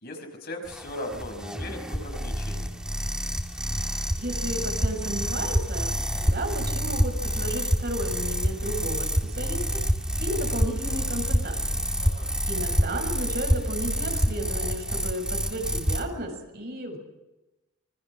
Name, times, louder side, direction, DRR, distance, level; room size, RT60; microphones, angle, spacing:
voice 1, 0.0-2.8 12.0-12.4, left 1 dB, 45° left, 4 dB, 5.6 m, -38 dB
sound 1, 0.6-16.0, equal, 5° right, 2.3 m, -27 dB
voice 2, 4.2-9.8 10.2-11.8 12.5-17.0, right 1 dB, 50° right, 3 dB, 7.0 m, -33 dB
26.5 x 24.0 x 6.5 m, 1.0 s
head